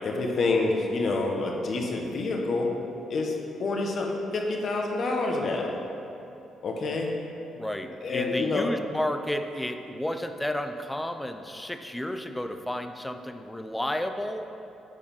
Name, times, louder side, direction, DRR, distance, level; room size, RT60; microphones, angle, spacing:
voice 1, 0.0-2.7 3.1-5.7 6.6-7.1 8.0-8.7, left 3 dB, 55° left, 1 dB, 1.3 m, -27 dB
voice 2, 7.5-14.5, left 1 dB, 10° left, 7 dB, 0.6 m, -32 dB
9.2 x 4.9 x 5.7 m, 2.8 s
cardioid pair, 90°, 0 cm